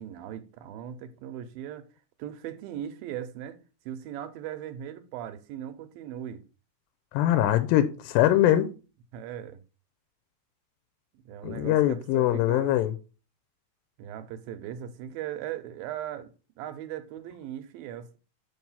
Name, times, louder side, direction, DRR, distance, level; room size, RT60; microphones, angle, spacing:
voice 1, 0.0-1.9 2.2-3.6 3.9-6.4 9.1-9.6 11.1-12.8 14.0-18.2, right 10 dB, 85° right, 2.5 m, -38 dB
voice 2, 7.1-8.7 11.4-12.9, left 13 dB, 85° left, 2.3 m, -22 dB
5.5 x 4.6 x 5.5 m
omnidirectional pair, 4.1 m